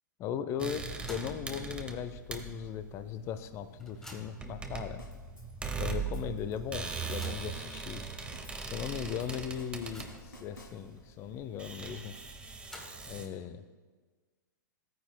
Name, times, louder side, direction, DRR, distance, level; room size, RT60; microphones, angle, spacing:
voice 1, 0.2-0.8 1.1-5.0 5.8-8.0 8.6-12.1 13.1-13.6, left 9 dB, 25° left, 10 dB, 0.6 m, -38 dB
sound 1, 0.6-13.3, right 5 dB, 10° right, 0.8 m, -40 dB
sound 2, 1.0-1.5 1.9-2.0 3.0-3.1 3.4-4.5 5.3-5.4 5.8-5.9 6.8-7.6 8.3-8.4 8.7-8.8 9.3-10.4 12.3-13.2, left 1 dB, 5° left, 1.3 m, -51 dB
sound 3, 5.0-11.2, left 1 dB, 90° left, 1.2 m, -55 dB
15.0 x 9.2 x 2.2 m, 1.4 s
figure-of-eight pair, 110°, 10 cm